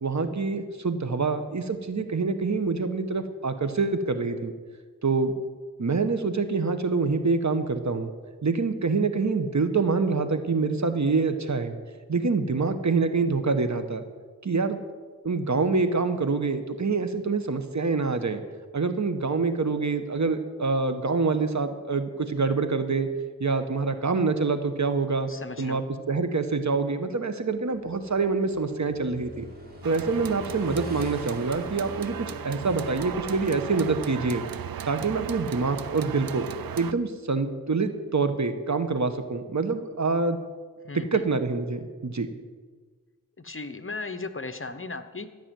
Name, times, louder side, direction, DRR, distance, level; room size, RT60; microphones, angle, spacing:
voice 1, 0.0-4.5 5.0-5.3 5.8-8.1 8.4-11.7 12.1-14.0 14.4-14.8 15.2-18.4 18.7-23.1 23.4-25.3 25.6-29.4 29.8-34.4 34.8-36.4 36.8-40.4 41.1-42.3, right 4 dB, 50° right, 8 dB, 1.2 m, -26 dB
voice 2, 25.3-25.8 40.9-41.2 43.4-45.3, left 3 dB, 35° left, 10 dB, 0.9 m, -36 dB
Motorcycle / Engine, 27.7-34.8, right 1 dB, 25° right, 3.3 m, -44 dB
sound 1, 29.8-36.9, right 9 dB, 80° right, 0.6 m, -37 dB
13.0 x 6.1 x 9.2 m, 1.5 s
wide cardioid pair, 50°, 35 cm